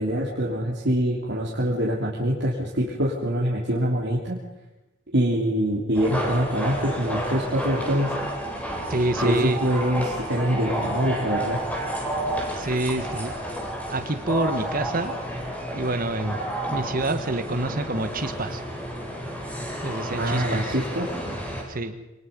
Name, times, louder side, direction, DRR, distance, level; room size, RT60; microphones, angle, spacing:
voice 1, 0.0-4.4 5.1-8.1 9.2-11.6 20.1-21.1, equal, 60° right, -4 dB, 3.2 m, -24 dB
sound 1, 5.9-21.6, right 1 dB, 5° left, 4.4 m, -31 dB
voice 2, 8.9-9.6 12.5-13.3 13.9-15.1 15.7-16.4 16.7-18.6 19.8-20.7 21.7-22.0, right 2 dB, 45° right, 9 dB, 1.5 m, -27 dB
26.0 x 19.5 x 5.4 m, 1.0 s
head